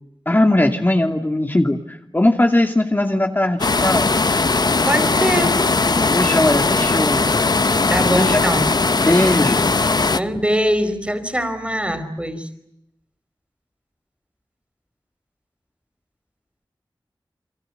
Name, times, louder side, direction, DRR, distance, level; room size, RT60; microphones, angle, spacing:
voice 1, 0.3-4.1 6.1-7.3 8.1-8.4 9.0-9.8, left 1 dB, 25° left, 4 dB, 2.6 m, -19 dB
sound 1, 3.6-10.2, left 3 dB, 55° left, 1.0 m, -18 dB
voice 2, 4.8-5.6 7.9-8.7 10.1-12.5, equal, 15° right, 11 dB, 4.9 m, -22 dB
30.0 x 23.5 x 8.0 m, 0.84 s
cardioid pair, 50°, 9 cm